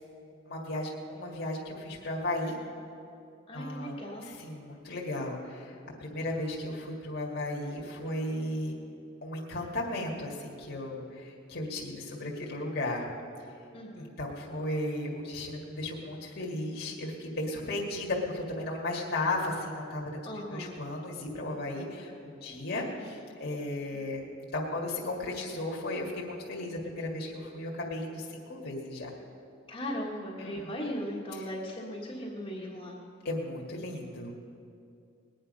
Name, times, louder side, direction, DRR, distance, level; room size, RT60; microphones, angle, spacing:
voice 1, 0.5-2.6 3.5-5.7 6.0-8.8 9.2-13.1 14.0-24.2 24.5-29.1 30.4-30.7 31.3-31.5 33.2-34.3, left 1 dB, 55° left, -3 dB, 1.9 m, -35 dB
voice 2, 3.5-4.3 13.7-14.1 20.3-20.8 29.7-32.9, equal, 25° left, -4 dB, 1.6 m, -38 dB
20.5 x 9.4 x 5.4 m, 2.6 s
head